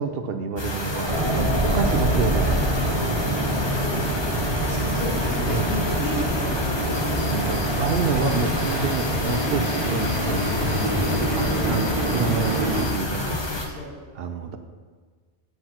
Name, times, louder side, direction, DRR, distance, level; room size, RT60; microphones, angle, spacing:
voice 1, 0.0-2.6 2.9-3.9 5.5-5.8 7.1-10.7 11.3-13.4 14.1-14.6, right 5 dB, 65° right, 7 dB, 0.8 m, -29 dB
sound 1, 0.6-13.7, left 3 dB, 25° left, 0.7 m, -29 dB
sound 2, 1.1-12.8, right 1 dB, 30° right, 1.0 m, -25 dB
voice 2, 3.6-4.0 4.7-7.2 8.1-8.3 11.0-11.3 13.2-13.9, left 2 dB, 60° left, -4 dB, 1.8 m, -34 dB
sound 3, 6.9-13.1, left 4 dB, 75° left, 1.0 m, -36 dB
7.9 x 7.6 x 3.0 m, 1.5 s
omnidirectional pair, 1.2 m